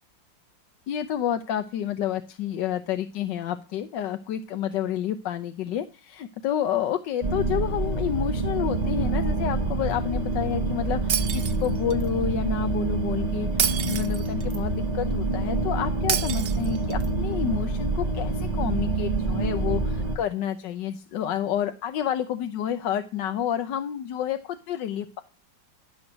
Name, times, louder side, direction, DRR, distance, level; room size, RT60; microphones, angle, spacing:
voice 1, 0.9-13.5 13.8-24.4 24.7-25.2, left 10 dB, 75° left, 9 dB, 1.4 m, -29 dB
sound 1, 7.2-20.2, right 3 dB, 30° right, 0.8 m, -27 dB
Shatter, 11.1-12.1 13.6-14.6 16.1-17.1, right 8 dB, 60° right, 0.6 m, -28 dB
14.0 x 6.3 x 6.1 m, 0.33 s
omnidirectional pair, 2.0 m